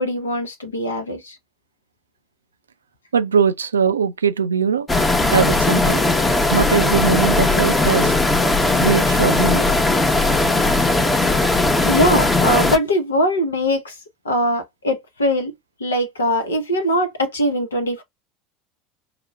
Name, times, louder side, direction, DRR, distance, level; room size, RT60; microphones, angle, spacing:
voice 1, 0.0-1.4 11.8-14.0 14.2-15.5 15.8-18.0, equal, 80° left, 0.7 m, -21 dB
voice 2, 3.1-4.9 5.3-6.1 6.5-8.2 8.8-9.7, right 6 dB, 80° right, 0.4 m, -20 dB
sound 1, 4.9-12.8, left 2 dB, 15° left, 0.8 m, -18 dB
5.7 x 2.1 x 2.2 m
figure-of-eight pair, 75°, 0 cm